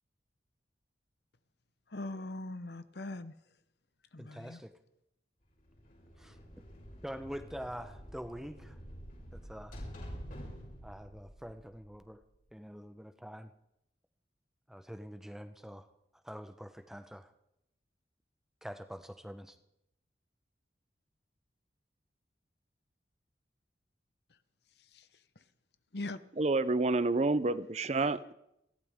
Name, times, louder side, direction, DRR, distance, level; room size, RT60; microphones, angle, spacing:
voice 1, 1.9-3.3 4.1-4.6 24.9-25.1 25.9-26.2, left 2 dB, 70° left, 0.9 m, -41 dB
voice 2, 4.2-4.7 6.2-6.4 7.0-8.8 9.3-9.8 10.8-12.2 12.5-13.5 14.7-15.9 16.2-17.3 18.6-19.5, equal, 5° right, 0.9 m, -45 dB
sound 1, 5.6-12.4, equal, 50° left, 6.8 m, -48 dB
voice 3, 26.4-28.3, right 3 dB, 40° right, 0.5 m, -29 dB
29.5 x 12.0 x 3.6 m
head